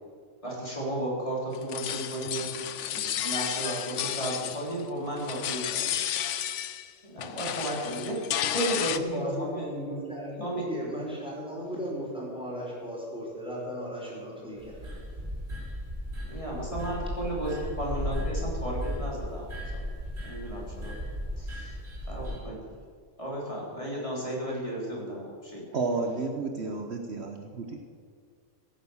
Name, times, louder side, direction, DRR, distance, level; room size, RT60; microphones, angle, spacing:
voice 1, 0.4-2.5 2.9-5.9 7.0-8.2 8.5-9.6 10.4-10.6 16.3-19.5 20.2-20.9 21.4-21.7 22.1-22.6 23.2-25.6, right 1 dB, 25° left, -4 dB, 3.7 m, -34 dB
sound 1, 1.5-4.9 5.2-6.9 7.2-9.0, left 10 dB, 75° left, 1.0 m, -32 dB
voice 2, 8.8-15.0, equal, 5° right, -4 dB, 4.6 m, -36 dB
sound 2, 14.6-22.4, equal, 90° right, 4.6 m, -35 dB
voice 3, 25.7-27.8, right 3 dB, 60° right, 4 dB, 1.2 m, -31 dB
16.5 x 9.3 x 7.1 m, 2.1 s
omnidirectional pair, 1.3 m